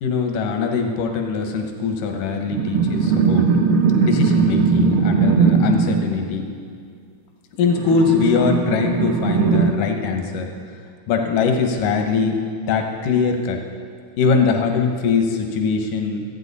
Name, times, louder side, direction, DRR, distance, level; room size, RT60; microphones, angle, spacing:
voice 1, 0.0-3.5 4.0-6.5 7.6-10.5 11.1-12.4 12.7-13.6 14.2-16.3, left 5 dB, 80° left, 3 dB, 2.7 m, -21 dB
sound 1, 2.5-6.1 7.6-9.7, right 5 dB, 85° right, 1.2 m, -19 dB
26.5 x 9.1 x 4.1 m, 2.2 s
omnidirectional pair, 3.7 m